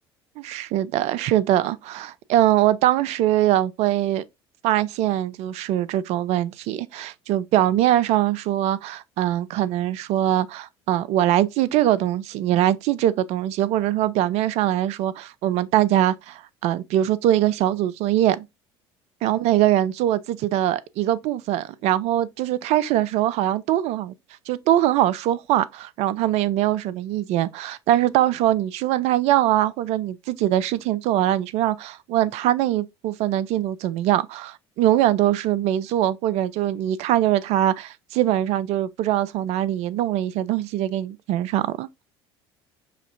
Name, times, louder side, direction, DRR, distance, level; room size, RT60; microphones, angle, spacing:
voice 1, 0.4-4.2 4.6-18.5 19.2-24.1 24.5-41.9, right 13 dB, 55° right, 0.4 m, -22 dB
5.8 x 2.5 x 2.4 m
hypercardioid pair, 65°, 14 cm